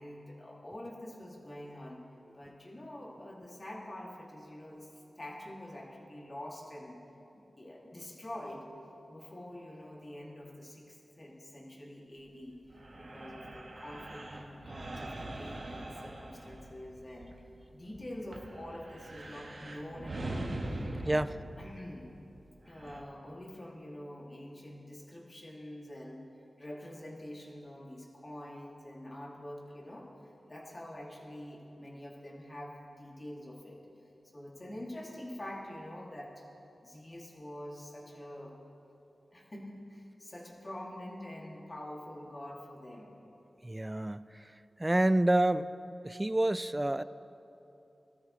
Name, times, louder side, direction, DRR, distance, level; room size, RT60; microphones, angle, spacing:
voice 1, 0.0-2.0 2.3-7.0 7.3-8.7 9.1-17.3 17.7-20.5 21.0-21.3 21.6-22.1 22.7-26.2 26.6-33.8 34.3-36.5 36.8-38.6 39.3-43.2, left 1 dB, 35° left, -3 dB, 2.5 m, -46 dB
sound 1, 12.7-17.4 17.8-23.0, right 1 dB, 65° right, 1.7 m, -42 dB
voice 2, 43.6-44.2 44.8-45.7 46.0-47.0, right 1 dB, 20° right, 14 dB, 0.4 m, -28 dB
19.5 x 13.0 x 3.2 m, 2.9 s
cardioid pair, 50°, 0 cm